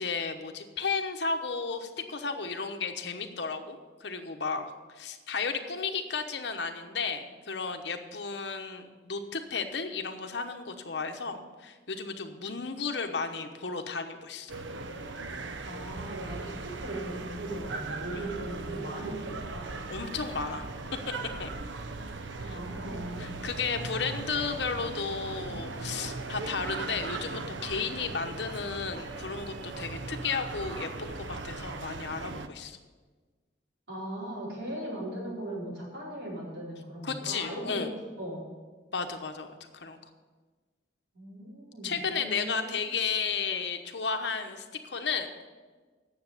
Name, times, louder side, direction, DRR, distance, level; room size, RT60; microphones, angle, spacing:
voice 1, 0.0-14.5 18.1-18.3 19.9-20.7 21.4-21.5 22.4-22.6 23.2-32.8 37.0-37.9 38.9-40.0 41.8-45.5, left 5 dB, 70° left, 6 dB, 1.0 m, -33 dB
sound 1, 14.5-32.5, right 3 dB, 85° right, 0.7 m, -38 dB
voice 2, 15.6-19.8 22.4-23.3 33.9-37.9 38.2-38.4 41.1-42.8, right 1 dB, 70° right, -5 dB, 4.5 m, -38 dB
9.4 x 7.1 x 8.3 m, 1.4 s
head